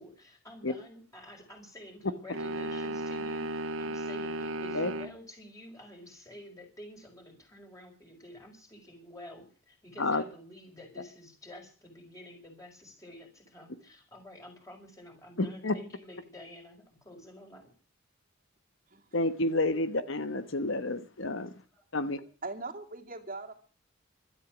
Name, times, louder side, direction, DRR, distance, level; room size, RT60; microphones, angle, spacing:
voice 1, 0.0-17.7 21.7-21.8, left 1 dB, 15° left, 2 dB, 5.6 m, -50 dB
sound 1, 2.3-5.2, right 1 dB, 75° right, 2.1 m, -35 dB
voice 2, 15.4-15.7 19.1-21.5 21.9-22.2, left 2 dB, 60° left, 12 dB, 1.2 m, -29 dB
voice 3, 22.4-23.5, right 3 dB, 40° right, 3 dB, 2.5 m, -40 dB
16.5 x 13.0 x 6.2 m, 0.39 s
head